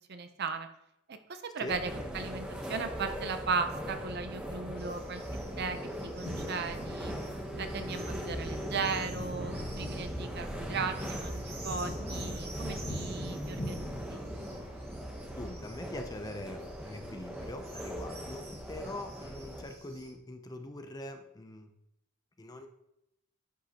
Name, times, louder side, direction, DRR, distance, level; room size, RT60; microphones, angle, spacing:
voice 1, 0.1-0.7 1.1-5.2 5.6-5.8 6.2-7.1 7.6-14.2, right 4 dB, 50° right, 8 dB, 0.6 m, -36 dB
sound 1, 1.7-19.6, equal, 5° right, 0.9 m, -39 dB
sound 2, 4.8-20.1, right 2 dB, 25° right, 1.8 m, -51 dB
sound 3, 6.2-13.8, equal, 45° left, 1.0 m, -44 dB
voice 2, 15.3-18.4 18.7-21.7 22.4-22.7, left 1 dB, 15° left, 6 dB, 0.5 m, -43 dB
10.0 x 5.3 x 2.8 m, 0.82 s
head